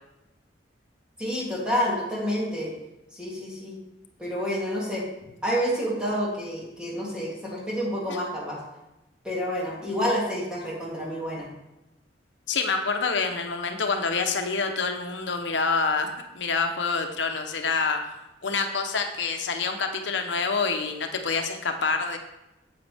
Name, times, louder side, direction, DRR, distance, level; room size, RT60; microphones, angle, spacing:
voice 1, 1.2-2.7 3.1-3.8 4.2-5.0 5.4-8.6 9.2-11.5, equal, 5° right, -7 dB, 3.0 m, -28 dB
voice 2, 12.5-22.2, left 4 dB, 90° left, 5 dB, 0.9 m, -27 dB
9.3 x 8.0 x 3.5 m, 0.95 s
head